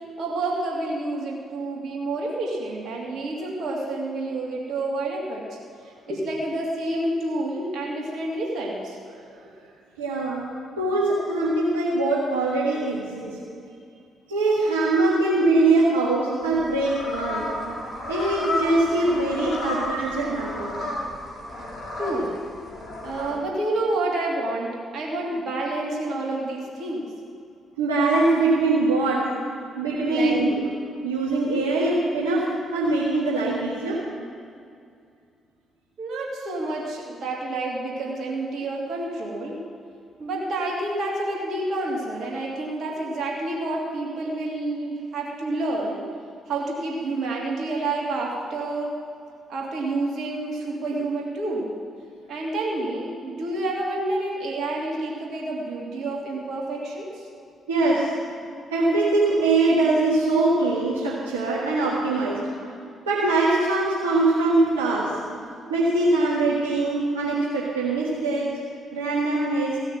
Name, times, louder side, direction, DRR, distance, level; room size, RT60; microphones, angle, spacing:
voice 1, 0.2-5.6 6.1-9.0 11.4-11.5 22.0-22.3 23.0-27.1 30.1-30.4 36.0-39.6 40.2-46.0 46.5-48.9 49.5-51.7 52.3-57.3 62.6-62.7, right 2 dB, 60° right, -3 dB, 2.8 m, -29 dB
voice 2, 10.0-10.4 10.8-13.4 14.3-17.5 18.1-20.8 21.8-21.9 27.8-29.2 29.8-30.6 31.0-32.4 32.7-34.0 57.7-58.1 58.7-62.4 63.0-65.2 65.7-68.5 68.9-69.8, right 2 dB, 85° right, -7 dB, 1.5 m, -22 dB
sound 1, 16.4-23.4, left 1 dB, 45° left, 2.9 m, -32 dB
16.0 x 6.4 x 7.5 m, 2.4 s
figure-of-eight pair, 40°, 0 cm